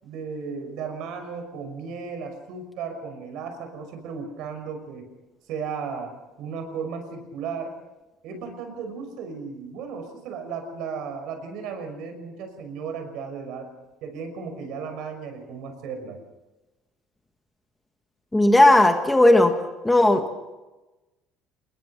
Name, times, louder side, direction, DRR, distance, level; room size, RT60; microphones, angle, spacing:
voice 1, 0.0-5.1 5.5-6.1 6.4-7.7 8.2-13.7 14.0-16.2, right 5 dB, 60° right, 6 dB, 5.7 m, -35 dB
voice 2, 18.3-19.5 19.8-20.2, left 1 dB, 5° left, 5 dB, 1.6 m, -16 dB
27.5 x 21.0 x 5.8 m, 1.1 s
cardioid pair, 160°, 0 cm